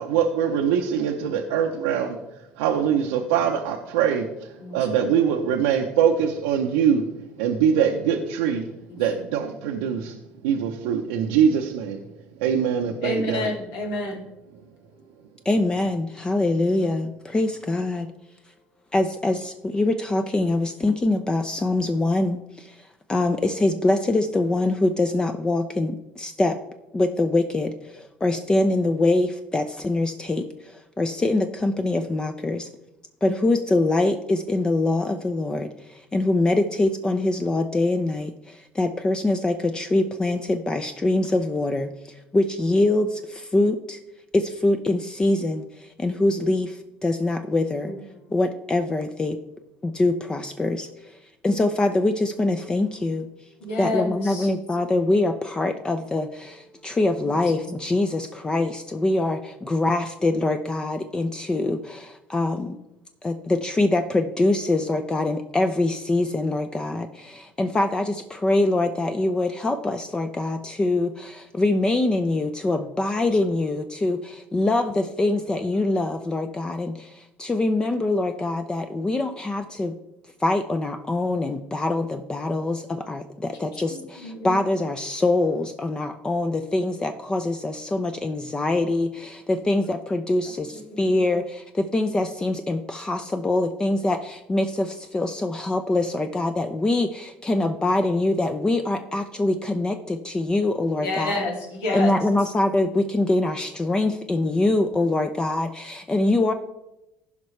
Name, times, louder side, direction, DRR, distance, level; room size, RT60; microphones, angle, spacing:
voice 1, 0.0-7.0 7.4-8.7 9.0-12.0 12.4-13.6, right 8 dB, 90° right, 1 dB, 0.7 m, -23 dB
voice 2, 13.0-14.2 47.9-48.0 53.6-54.5 83.9-84.5 101.0-102.1, left 2 dB, 75° left, 0 dB, 2.5 m, -28 dB
voice 3, 15.4-18.1 18.9-26.6 26.9-32.7 33.2-44.0 44.3-47.9 48.3-49.4 49.8-51.2 51.4-53.3 53.8-62.8 63.2-80.0 80.4-101.5 101.9-106.5, left 2 dB, 20° left, 7 dB, 0.6 m, -24 dB
15.5 x 5.3 x 3.2 m, 0.92 s
supercardioid pair, 95°, 4 cm